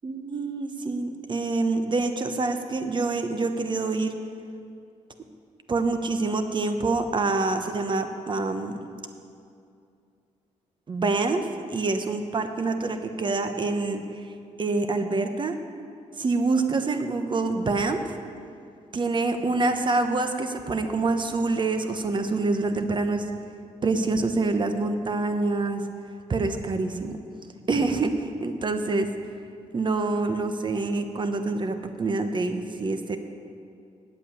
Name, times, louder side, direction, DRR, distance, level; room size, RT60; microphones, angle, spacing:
voice 1, 0.0-4.1 5.7-8.8 10.9-14.0 14.6-15.6 16.2-18.1 18.9-23.3 23.8-25.8 26.3-27.2 27.7-29.1 29.7-33.2, right 3 dB, 40° right, 7 dB, 1.0 m, -26 dB
9.8 x 8.3 x 8.6 m, 2.4 s
cardioid pair, 90°, 13 cm